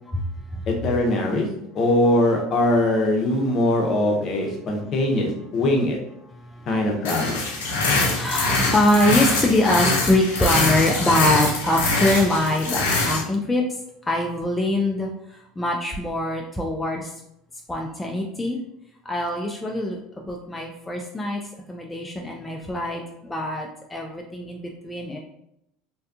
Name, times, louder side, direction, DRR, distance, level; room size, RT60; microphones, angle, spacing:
voice 1, 0.7-1.5 1.7-6.0 6.7-7.4, left 1 dB, 50° left, 1 dB, 0.7 m, -21 dB
voice 2, 6.5-7.0 7.3-7.4 7.7-13.6 14.1-15.1 15.6-17.1 17.7-18.6 19.1-21.4 21.7-25.2, left 1 dB, 15° left, 0 dB, 0.3 m, -23 dB
sound 1, 7.0-13.2, left 3 dB, 85° left, 0.6 m, -23 dB
2.6 x 2.3 x 2.4 m, 0.80 s
hypercardioid pair, 90°, 0 cm